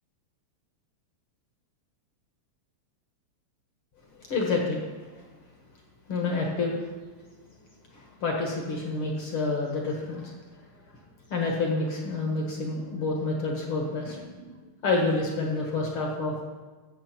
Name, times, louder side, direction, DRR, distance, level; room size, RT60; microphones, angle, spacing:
voice 1, 4.1-4.9 6.1-6.8 7.9-10.3 11.3-14.5 14.8-16.4, left 3 dB, 50° left, 0 dB, 2.0 m, -28 dB
14.0 x 7.7 x 4.5 m, 1.3 s
omnidirectional pair, 3.7 m